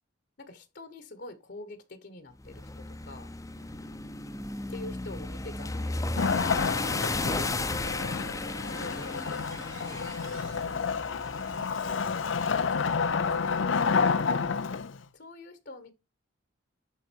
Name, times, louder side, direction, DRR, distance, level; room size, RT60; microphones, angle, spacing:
voice 1, 0.4-3.3 4.7-6.6 8.1-10.1 11.5-13.5 15.1-15.9, left 2 dB, 60° left, 1.2 m, -46 dB
sound 1, 2.4-14.5, left 2 dB, 15° left, 0.7 m, -36 dB
voice 2, 3.5-4.2, equal, 60° right, 5.7 m, -58 dB
sound 2, 5.2-11.1, right 6 dB, 90° right, 4.7 m, -57 dB
Wood, 6.2-15.0, left 5 dB, 85° left, 0.6 m, -29 dB
11.0 x 4.0 x 4.5 m
head